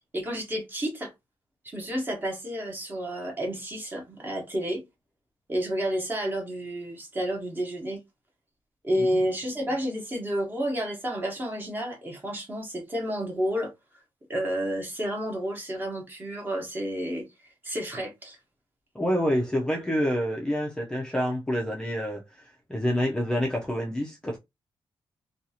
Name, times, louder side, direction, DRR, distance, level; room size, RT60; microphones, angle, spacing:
voice 1, 0.1-1.1 1.6-4.8 5.5-8.0 8.8-13.7 14.3-17.3 17.6-18.4, equal, 20° right, 1.0 m, -30 dB
voice 2, 18.9-24.4, equal, 10° left, 0.5 m, -28 dB
2.7 x 2.4 x 2.7 m
wide cardioid pair, 140°, 9 cm